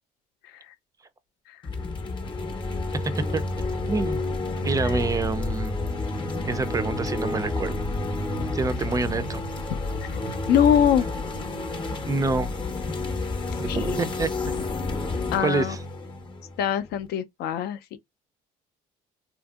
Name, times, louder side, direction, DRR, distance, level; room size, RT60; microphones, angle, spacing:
sound 1, 1.6-17.0, left 2 dB, 30° left, 0.6 m, -30 dB
voice 1, 3.9-4.2 4.6-5.7 6.5-7.7 8.5-9.4 12.1-12.5 13.6-14.3 15.4-15.8, right 3 dB, 20° right, 0.3 m, -27 dB
voice 2, 10.5-11.1 13.7-14.0 15.3-15.8 16.6-18.0, left 9 dB, 75° left, 0.4 m, -23 dB
2.8 x 2.6 x 2.3 m
cardioid pair, 110°, 17 cm